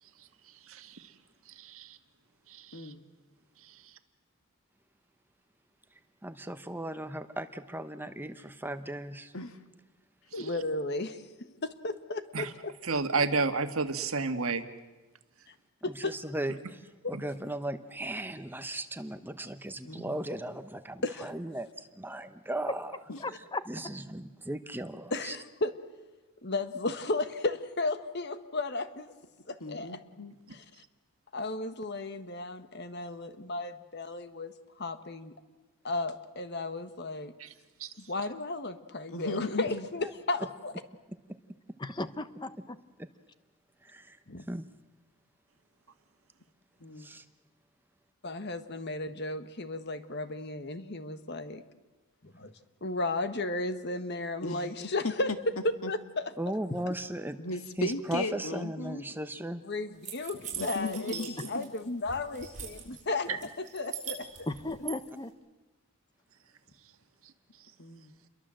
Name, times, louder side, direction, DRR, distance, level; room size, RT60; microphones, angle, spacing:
voice 1, 0.0-1.2 1.4-2.0 2.5-2.9 3.6-4.0 10.4-10.5 12.3-12.5 12.8-14.6 15.4-15.5 17.1-17.2 37.4-37.5 37.8-38.1 63.3-63.4 66.8-66.9 67.2-67.7, right 4 dB, 70° right, 8 dB, 1.7 m, -33 dB
voice 2, 2.7-3.0 9.3-9.6 10.3-10.5 11.4-11.6 19.8-20.2 23.1-23.3 29.6-30.3 39.1-39.9 46.8-47.1 54.4-55.1 55.8-55.9 57.4-59.0 60.6-61.7 67.8-68.1, left 2 dB, 70° left, 8 dB, 1.9 m, -37 dB
voice 3, 6.2-9.3 15.9-16.5 17.1-23.0 23.7-25.4 43.0-43.1 43.8-44.2 44.5-44.7 47.0-47.2 56.4-57.4 57.8-59.6 63.3-63.4, right 1 dB, 10° right, 9 dB, 0.9 m, -37 dB
voice 4, 10.4-11.3 11.6-12.5 15.5-15.6 15.8-16.2 21.0-21.3 25.1-25.7 26.4-29.1 29.5-29.9 31.3-35.3 35.8-37.3 38.1-40.7 44.3-44.5 48.2-51.6 52.2-52.5 52.8-55.3 55.9-56.0 59.6-63.3 63.7-64.3, left 2 dB, 50° left, 10 dB, 1.5 m, -34 dB
voice 5, 23.2-23.6 41.8-42.8 64.5-65.3, left 2 dB, 20° left, 12 dB, 1.0 m, -36 dB
sound 1, 60.0-61.8 62.1-63.0 63.4-65.0, right 9 dB, 35° right, 6.5 m, -40 dB
29.0 x 23.0 x 7.7 m, 1.2 s
head